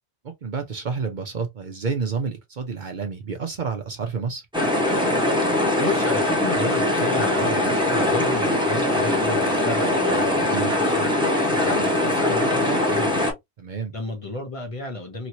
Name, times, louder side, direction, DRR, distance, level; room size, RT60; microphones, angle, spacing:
voice 1, 0.2-4.4 10.5-10.7 11.5-11.9 13.6-13.9, right 5 dB, 55° right, 0.7 m, -29 dB
sound 1, 4.5-13.3, left 1 dB, 5° right, 1.0 m, -21 dB
voice 2, 5.8-11.1 11.7-13.3 13.9-15.3, left 1 dB, 35° left, 0.9 m, -32 dB
3.0 x 2.8 x 2.8 m
omnidirectional pair, 1.1 m